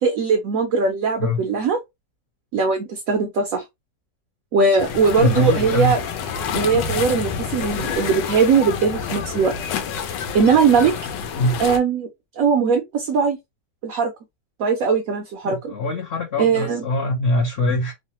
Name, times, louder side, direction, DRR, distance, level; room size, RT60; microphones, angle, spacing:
voice 1, 0.0-1.8 2.5-3.6 4.5-6.0 6.5-9.5 10.3-10.9 11.6-12.1 12.4-13.4 13.8-14.1 14.6-15.7 16.4-16.8, right 5 dB, 70° right, 0.8 m, -20 dB
sound 1, 4.8-11.8, left 7 dB, 90° left, 1.3 m, -28 dB
voice 2, 5.2-5.9 11.4-11.6 15.4-17.9, left 1 dB, 55° left, 0.8 m, -22 dB
3.1 x 2.1 x 2.8 m
omnidirectional pair, 1.8 m